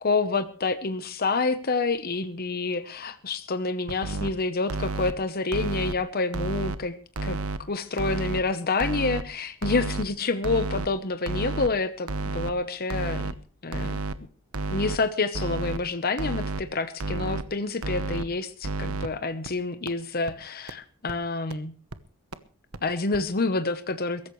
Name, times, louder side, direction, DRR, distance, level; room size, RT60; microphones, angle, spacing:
voice 1, 0.0-7.0 7.2-7.4 7.7-13.3 13.6-14.0 14.7-21.7 22.8-24.3, left 3 dB, 45° left, 10 dB, 0.9 m, -28 dB
sound 1, 3.9-4.3 4.7-5.1 5.5-5.9 6.3-6.8 7.2-7.6 8.0-8.4 8.8-9.2 9.6-10.1 10.4-10.9 11.3-11.7 12.1-12.5 12.9-13.3 13.7-14.2 14.5-15.0 15.3-15.8 16.2-16.6 17.0-17.4 17.8-18.3 18.6-19.1 19.5-19.6 19.9-20.0 20.3-20.4 20.7-20.8 21.1-21.2 21.5-21.6 21.9-22.0 22.3-22.4 22.7-22.8 23.1-23.2, right 2 dB, 70° right, 1.1 m, -30 dB
22.5 x 14.0 x 3.2 m, 0.40 s
head